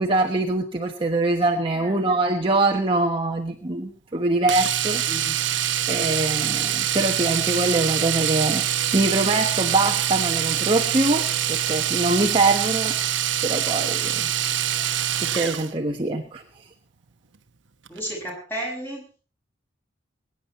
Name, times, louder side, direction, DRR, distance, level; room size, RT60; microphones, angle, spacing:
voice 1, 0.0-5.0 5.9-8.6 8.9-13.0 13.4-14.3 14.8-14.9 15.2-16.4, right 2 dB, 30° right, 2 dB, 1.3 m, -23 dB
Domestic sounds home sounds, 4.5-15.7 17.9-18.0 18.3-18.4, right 11 dB, 70° right, 1.1 m, -24 dB
voice 2, 5.1-5.4 17.9-19.0, right 1 dB, 10° left, 0 dB, 6.3 m, -33 dB
23.0 x 10.0 x 4.3 m, 0.37 s
head